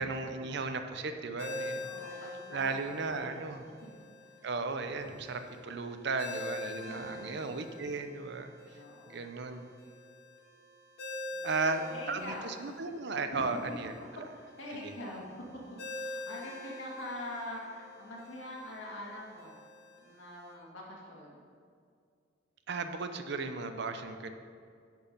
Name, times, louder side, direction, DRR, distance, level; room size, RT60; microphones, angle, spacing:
voice 1, 0.0-1.9 2.5-3.6 4.4-8.5 9.1-9.6 11.4-14.3 14.8-14.9 22.7-24.3, right 3 dB, 65° right, 8 dB, 0.6 m, -35 dB
Ringtone, 1.4-20.5, left 2 dB, 60° left, 1.6 m, -46 dB
voice 2, 1.8-2.7 3.1-3.3 4.2-4.3 6.8-7.5 8.7-9.3 11.3-12.5 13.3-13.6 14.3-15.3 15.9-19.6 20.0-21.4, left 1 dB, 90° left, -3 dB, 2.1 m, -44 dB
10.5 x 4.6 x 5.4 m, 2.2 s
head